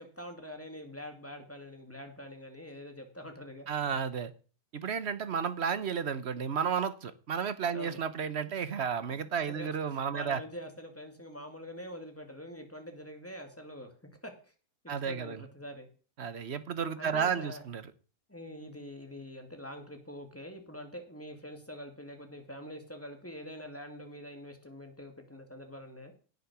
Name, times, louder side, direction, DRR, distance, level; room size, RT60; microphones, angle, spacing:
voice 1, 0.0-3.7 7.7-8.0 9.1-13.9 14.2-14.5 14.8-15.9 17.0-17.6 18.3-26.1, equal, 10° left, 5 dB, 2.3 m, -45 dB
voice 2, 3.7-4.3 4.7-10.4 14.9-15.4 16.2-17.8, right 7 dB, 50° right, 14 dB, 1.1 m, -32 dB
17.5 x 6.7 x 6.1 m, 0.39 s
omnidirectional pair, 1.6 m